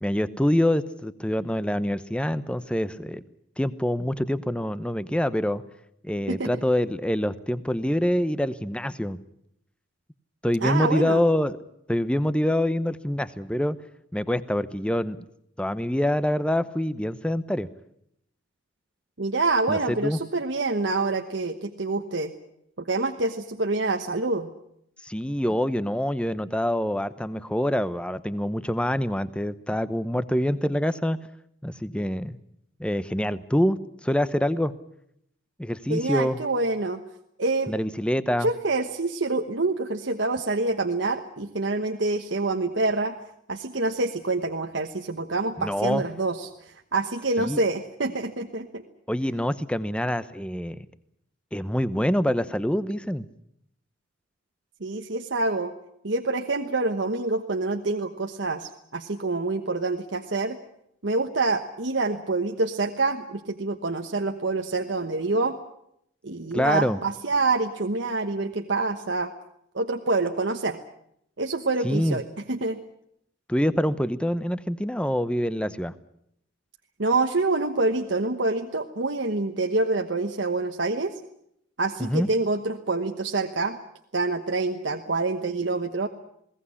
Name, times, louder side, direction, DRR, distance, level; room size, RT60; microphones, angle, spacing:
voice 1, 0.0-3.2 3.6-5.6 6.0-9.2 10.4-11.6 11.9-13.8 14.1-15.2 15.6-17.7 19.7-20.2 25.0-31.2 31.6-32.4 32.8-34.7 35.6-36.4 37.7-38.5 45.6-46.0 47.4-47.6 49.1-50.9 51.5-53.3 66.5-67.0 71.8-72.2 73.5-75.9 82.0-82.3, left 1 dB, 5° left, 14 dB, 0.8 m, -25 dB
voice 2, 10.6-11.2 19.2-22.3 22.8-24.5 35.9-37.0 37.4-37.7 38.4-43.1 43.5-48.8 54.8-55.7 56.0-60.6 61.0-65.6 66.2-69.3 69.7-70.8 71.4-72.8 77.0-81.2 81.8-83.8 84.1-86.1, right 3 dB, 70° right, 5 dB, 1.2 m, -26 dB
21.5 x 17.5 x 9.8 m, 0.76 s
head